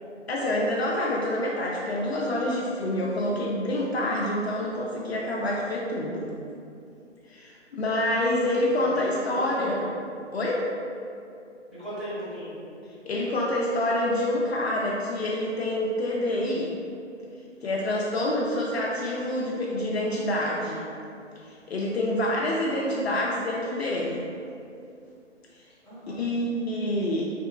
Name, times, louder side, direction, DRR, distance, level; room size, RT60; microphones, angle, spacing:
voice 1, 0.3-6.3 7.3-9.9 10.3-10.7 13.0-16.7 17.6-20.9 21.4-24.2 26.1-27.3, left 1 dB, 60° left, -3 dB, 0.5 m, -27 dB
voice 2, 8.7-9.8 11.7-12.5 25.8-26.2, equal, ahead, -16 dB, 1.5 m, -37 dB
3.4 x 3.0 x 2.5 m, 2.6 s
figure-of-eight pair, 145°, 37 cm